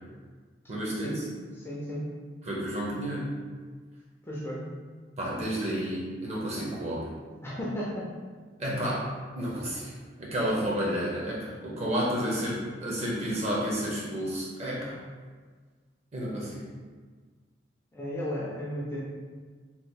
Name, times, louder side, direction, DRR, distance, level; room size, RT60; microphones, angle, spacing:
voice 1, 0.7-1.3 2.4-3.3 5.2-7.1 8.6-9.1 9.3-15.0 16.1-16.6, equal, 35° right, -4 dB, 0.7 m, -31 dB
voice 2, 1.6-2.1 4.2-4.7 7.4-8.1 8.6-8.8 17.9-19.0, equal, 15° left, -6 dB, 0.4 m, -34 dB
2.9 x 2.3 x 3.4 m, 1.5 s
head